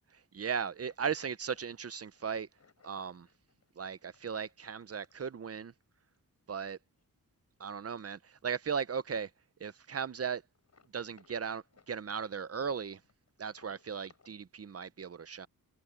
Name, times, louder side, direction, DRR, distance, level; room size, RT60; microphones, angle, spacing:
voice 1, 0.3-2.5 2.8-3.3 3.8-5.7 6.5-6.8 7.6-9.3 9.6-10.4 10.9-13.0 13.4-15.5, right 6 dB, 40° right, 0.7 m, -37 dB
sound 1, 0.8-5.6 6.0-6.2 6.9-7.0 7.4-7.5 7.9-8.4 8.7-8.8 9.1-9.2 9.6-10.0 10.5-14.3, left 5 dB, 50° left, 4.9 m, -66 dB
wide cardioid pair, 130°, 35 cm